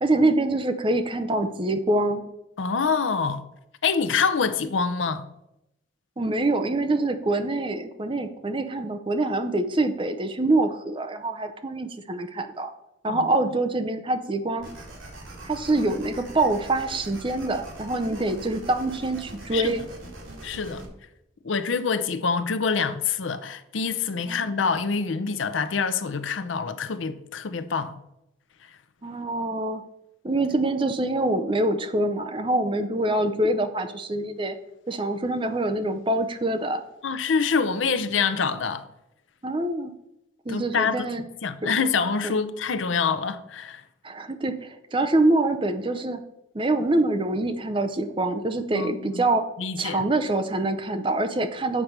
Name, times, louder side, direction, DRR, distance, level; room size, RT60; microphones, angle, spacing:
voice 1, 0.0-2.2 6.2-12.7 13.0-14.7 15.4-19.8 24.3-24.5 29.0-29.8 30.2-34.6 34.9-36.8 39.4-39.9 40.5-41.2 41.6-41.7 44.0-46.2 46.5-49.5 49.8-51.8, right 2 dB, 25° right, 0.6 m, -25 dB
voice 2, 2.6-3.5 3.8-5.3 13.1-13.3 19.5-19.8 20.4-20.8 21.4-28.0 28.6-28.7 37.0-38.9 40.5-41.1 41.4-43.8 48.7-49.3 49.6-50.0, left 5 dB, 80° left, 0.6 m, -26 dB
sound 1, 14.6-20.9, right 1 dB, 85° right, 1.9 m, -42 dB
7.4 x 4.6 x 6.6 m
head